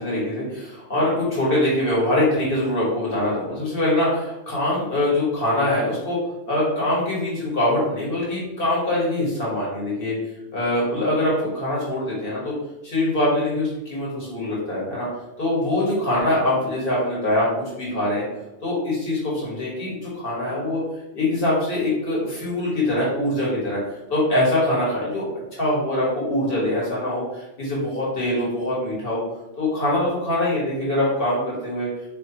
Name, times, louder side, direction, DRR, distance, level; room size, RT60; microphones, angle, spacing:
voice 1, 0.0-6.2 6.5-10.1 10.5-12.5 12.8-15.1 15.4-17.5 17.7-18.2 18.6-20.8 21.1-23.8 24.1-29.2 29.6-31.9, left 1 dB, 50° left, -6 dB, 1.7 m, -23 dB
4.2 x 3.2 x 2.8 m, 0.93 s
omnidirectional pair, 1.2 m